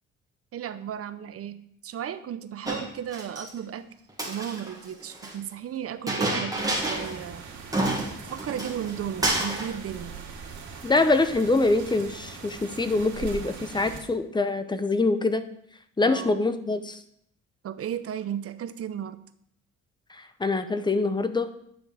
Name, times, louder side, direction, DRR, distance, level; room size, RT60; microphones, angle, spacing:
voice 1, 0.5-3.9 4.2-7.4 8.3-10.2 16.1-16.3 17.6-19.2, right 9 dB, 50° right, 12 dB, 0.6 m, -34 dB
Chink clink, 2.6-3.5 4.1-5.3 6.1-7.2 7.4-7.5 7.7-8.9 9.2-9.7, right 2 dB, 10° right, 1.7 m, -29 dB
Raining lightly, 6.6-14.0, right 5 dB, 75° right, 2.5 m, -41 dB
voice 2, 10.8-15.4 16.0-17.0 20.1-21.5, left 3 dB, 15° left, 11 dB, 0.7 m, -24 dB
9.9 x 6.0 x 3.4 m, 0.71 s
cardioid pair, 90°, 30 cm